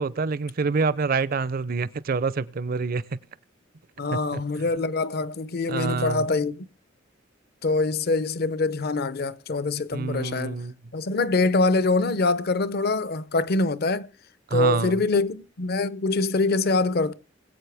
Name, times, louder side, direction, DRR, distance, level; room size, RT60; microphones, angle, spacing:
voice 1, 0.0-3.0 4.3-4.4 5.7-6.3 9.9-10.7 14.5-15.0, right 4 dB, 50° right, 0.5 m, -26 dB
voice 2, 4.0-6.7 7.6-10.6 10.9-14.1 14.5-17.1, left 3 dB, 55° left, 0.6 m, -24 dB
21.0 x 8.2 x 3.4 m
head